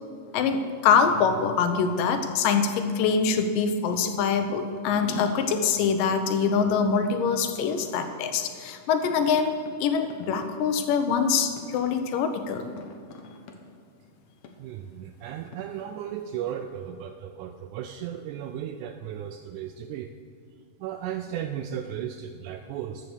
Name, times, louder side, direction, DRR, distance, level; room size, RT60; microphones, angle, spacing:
voice 1, 0.3-12.7, left 6 dB, 90° left, 7 dB, 2.5 m, -24 dB
sound 1, 4.5-4.6 5.0-6.9 7.6-8.4 9.0-9.7 10.1-10.5 11.1-11.2 11.6-12.0 12.6-13.5 14.4-14.5 15.5-15.6, left 5 dB, 65° left, 1.8 m, -42 dB
voice 2, 14.6-20.1 20.8-23.1, right 10 dB, 80° right, 6 dB, 1.9 m, -35 dB
13.5 x 6.5 x 7.0 m, 2.2 s
omnidirectional pair, 3.8 m